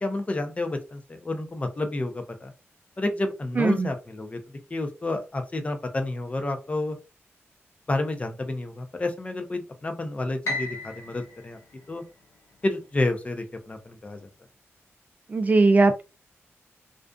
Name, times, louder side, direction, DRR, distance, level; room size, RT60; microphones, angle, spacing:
voice 1, 0.0-2.5 3.0-4.4 4.7-7.0 7.9-11.6 11.9-12.0 12.6-14.2, left 2 dB, 30° left, 0.5 m, -30 dB
voice 2, 3.6-3.9 15.3-16.0, right 3 dB, 35° right, 0.3 m, -19 dB
Piano, 10.4-12.7, left 2 dB, 75° left, 0.6 m, -35 dB
2.5 x 2.4 x 2.3 m
wide cardioid pair, 90°, 5 cm